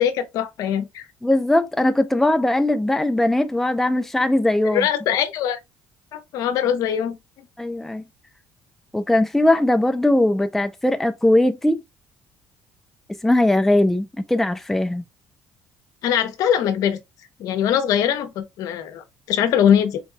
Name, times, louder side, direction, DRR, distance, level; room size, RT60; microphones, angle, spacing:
voice 1, 0.0-1.0 4.6-5.6 6.1-7.2 16.0-17.0 17.4-20.0, left 9 dB, 75° left, 0.7 m, -22 dB
voice 2, 1.2-4.9 7.6-8.0 8.9-11.8 13.2-15.0, left 1 dB, 5° left, 0.5 m, -20 dB
3.8 x 2.9 x 2.2 m
supercardioid pair, 90°, 6 cm